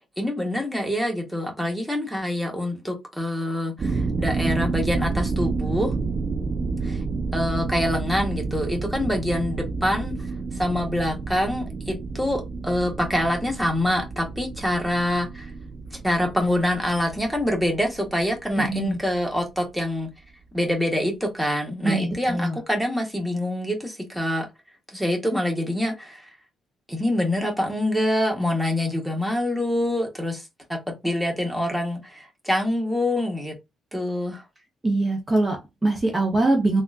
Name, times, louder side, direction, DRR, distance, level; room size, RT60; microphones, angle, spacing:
voice 1, 0.2-5.9 6.8-7.0 7.3-10.2 10.5-15.5 15.9-20.1 20.5-24.5 24.9-26.3 26.9-33.5 33.9-34.4, left 1 dB, ahead, 1.2 m, -25 dB
sound 1, 3.8-19.6, right 4 dB, 40° right, 0.4 m, -30 dB
voice 2, 18.6-19.0 21.8-22.6 34.8-36.8, right 2 dB, 20° right, 0.9 m, -23 dB
3.5 x 2.5 x 2.5 m
cardioid pair, 90°, 0 cm